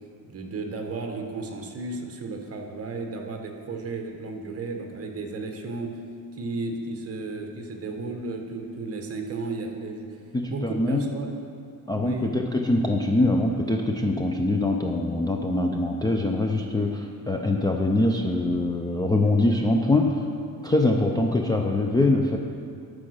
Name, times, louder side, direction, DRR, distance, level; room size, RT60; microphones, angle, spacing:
voice 1, 0.2-5.9 6.3-10.2 10.4-11.3 11.9-12.3 21.0-21.2, right 3 dB, 35° right, 3 dB, 1.2 m, -34 dB
voice 2, 10.3-11.1 11.9-20.2 20.6-22.4, left 2 dB, 10° left, 0 dB, 0.4 m, -23 dB
12.0 x 4.9 x 6.4 m, 2.3 s
cardioid pair, 130°, 39 cm